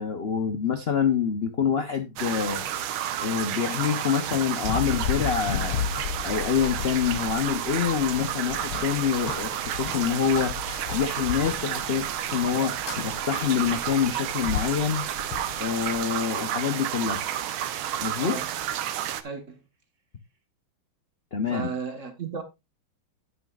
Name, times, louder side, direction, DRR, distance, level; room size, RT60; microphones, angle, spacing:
voice 1, 0.0-2.6 3.2-5.8 6.2-10.5 10.9-15.0 15.6-17.2 18.0-18.4 21.3-21.7, left 7 dB, 55° left, 0.6 m, -26 dB
sound 1, 2.2-19.2, right 10 dB, 80° right, 1.7 m, -31 dB
Run, 4.6-16.0, left 9 dB, 80° left, 1.5 m, -34 dB
voice 2, 19.2-19.6 21.5-22.4, right 5 dB, 40° right, 1.6 m, -34 dB
11.0 x 9.5 x 2.4 m
omnidirectional pair, 2.2 m